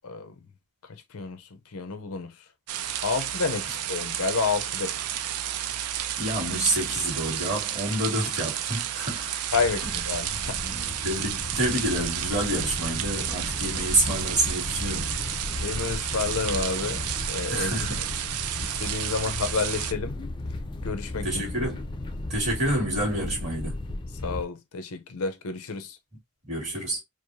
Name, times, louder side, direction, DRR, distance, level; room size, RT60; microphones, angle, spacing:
voice 1, 0.0-0.3 0.9-2.3 3.0-5.0 9.5-10.6 15.6-17.9 18.6-20.2 20.8-21.7 24.2-26.0, left 4 dB, 75° left, 0.7 m, -30 dB
sound 1, 2.7-19.9, right 11 dB, 85° right, 0.4 m, -31 dB
voice 2, 6.2-9.3 11.0-15.2 17.5-18.1 21.2-21.8 22.3-23.8 26.4-27.0, right 1 dB, 30° right, 2.3 m, -28 dB
sound 2, 9.5-24.4, left 2 dB, 20° left, 0.4 m, -35 dB
4.6 x 2.1 x 2.6 m
head